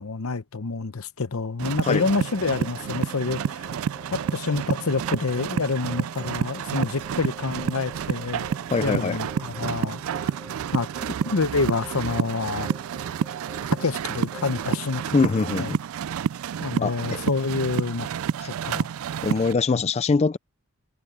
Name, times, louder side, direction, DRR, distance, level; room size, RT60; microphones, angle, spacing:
voice 1, 0.0-3.7 4.1-8.5 8.8-10.0 10.7-12.7 13.7-15.3 15.6-15.7 16.6-18.1 18.5-18.9 19.7-19.8, left 4 dB, 70° left, 0.9 m, -27 dB
sound 1, 1.6-19.5, right 7 dB, 70° right, 0.3 m, -29 dB
sound 2, 1.9-15.7, left 1 dB, 5° left, 3.0 m, -47 dB
voice 2, 8.7-9.2 15.1-15.8 16.8-17.0 18.4-18.5 19.2-20.4, left 4 dB, 30° left, 0.3 m, -23 dB
head